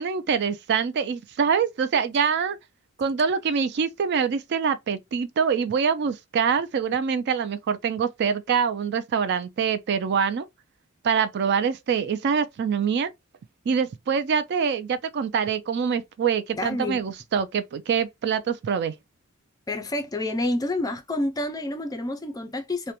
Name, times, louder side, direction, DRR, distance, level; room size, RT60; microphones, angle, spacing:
voice 1, 0.0-2.6 3.0-10.5 11.0-13.1 13.7-18.9, right 6 dB, 55° right, 0.4 m, -25 dB
voice 2, 16.5-17.0 19.7-22.9, left 1 dB, 15° left, 0.4 m, -28 dB
2.4 x 2.1 x 2.8 m
head